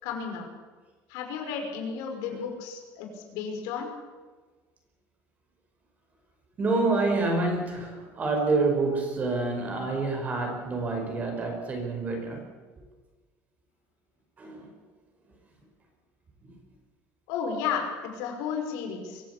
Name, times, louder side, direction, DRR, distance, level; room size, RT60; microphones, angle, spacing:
voice 1, 0.0-0.5 1.1-3.9 17.3-19.2, left 6 dB, 75° left, 3 dB, 5.5 m, -33 dB
voice 2, 6.6-12.4 14.4-14.7 16.4-16.5, right 3 dB, 25° right, 3 dB, 5.4 m, -27 dB
23.5 x 15.0 x 8.5 m, 1.3 s
cardioid pair, 165°, 6 cm